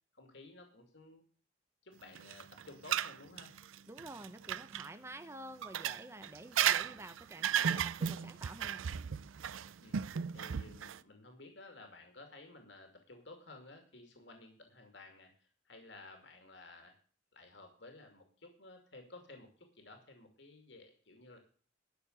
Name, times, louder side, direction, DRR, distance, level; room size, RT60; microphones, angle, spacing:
voice 1, 0.1-1.2 1.8-3.6 9.8-10.0 10.3-16.9 17.3-21.4, left 2 dB, 65° left, 4 dB, 2.5 m, -55 dB
sound 1, 2.2-4.9 5.6-11.0, right 9 dB, 80° right, 0.5 m, -35 dB
voice 2, 3.9-8.9, right 1 dB, 15° right, 8 dB, 0.8 m, -49 dB
12.0 x 6.6 x 7.9 m, 0.43 s
head